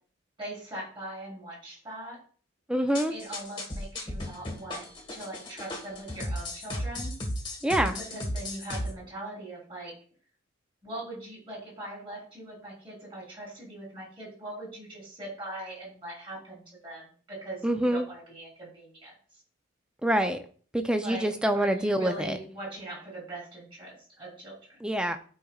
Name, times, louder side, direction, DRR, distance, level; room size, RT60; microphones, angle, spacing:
voice 1, 0.4-2.2 3.1-7.1 8.0-9.9 10.8-19.1 21.0-24.7, right 1 dB, 25° right, -3 dB, 3.8 m, -41 dB
voice 2, 2.7-3.1 7.6-8.0 17.6-18.0 20.0-20.4 20.7-22.4 24.8-25.2, right 1 dB, 5° right, 7 dB, 0.5 m, -26 dB
sound 1, 2.9-8.9, left 1 dB, 25° left, 1.3 m, -35 dB
12.0 x 5.0 x 2.4 m, 0.43 s
head